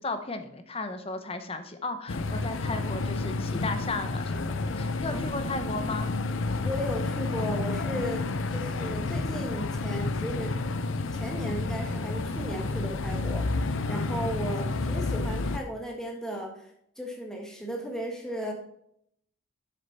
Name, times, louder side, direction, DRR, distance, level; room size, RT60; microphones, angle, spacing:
voice 1, 0.0-6.1, left 3 dB, 25° left, 8 dB, 0.8 m, -35 dB
sound 1, 2.1-15.6, left 3 dB, 65° left, 0.6 m, -30 dB
voice 2, 6.6-10.5 11.1-16.7 17.0-18.5, equal, 5° left, 1 dB, 1.6 m, -35 dB
7.3 x 6.8 x 4.2 m, 0.71 s
head